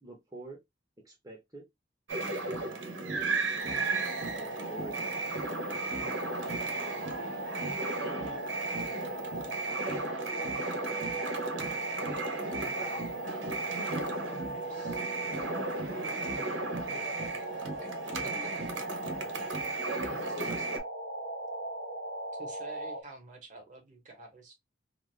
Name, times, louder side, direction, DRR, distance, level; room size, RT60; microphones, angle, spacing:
voice 1, 0.0-0.6 1.0-1.7 2.4-3.4 4.2-5.2 5.7-7.2, right 2 dB, 20° right, 0.9 m, -49 dB
sound 1, 2.1-20.8, right 3 dB, 85° right, 0.8 m, -35 dB
sound 2, 3.6-23.0, right 1 dB, 70° left, 1.0 m, -39 dB
voice 2, 9.8-15.2 17.0-17.7 18.2-18.4, left 1 dB, 40° left, 1.3 m, -48 dB
voice 3, 20.3-20.7 22.3-24.6, right 3 dB, 40° right, 1.0 m, -48 dB
2.5 x 2.3 x 3.2 m
head